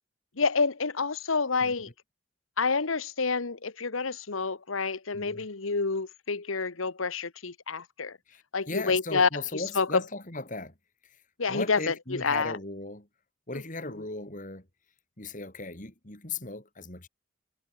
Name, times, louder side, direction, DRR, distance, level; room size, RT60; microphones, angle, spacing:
voice 1, 0.4-1.9 2.6-8.2 8.5-10.0 11.4-12.6 13.5-13.6, left 4 dB, 85° left, 1.3 m, -28 dB
voice 2, 5.1-5.5 8.3-10.7 11.0-11.2 11.5-13.1 13.5-14.7 15.2-17.1, left 2 dB, 40° left, 4.2 m, -37 dB
head